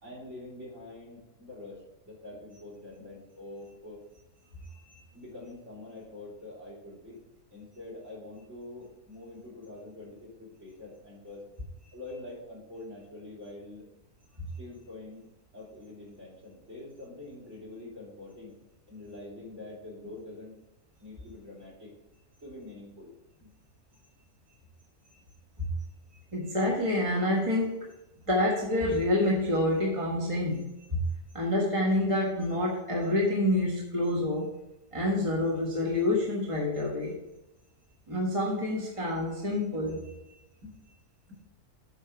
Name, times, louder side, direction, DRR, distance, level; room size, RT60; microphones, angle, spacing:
voice 1, 0.0-4.0 5.1-7.2 7.5-11.5 11.9-13.9 14.6-15.2 15.5-18.6 18.9-20.6 21.0-21.9 22.4-23.1 23.4-23.5 40.6-40.7 41.3-41.4, left 2 dB, 50° right, -3 dB, 3.7 m, -45 dB
voice 2, 26.3-27.9 28.3-31.0 31.3-34.6 34.9-37.2 38.1-40.1, left 1 dB, 20° right, -3 dB, 1.4 m, -28 dB
8.1 x 4.9 x 5.9 m, 0.91 s
omnidirectional pair, 1.6 m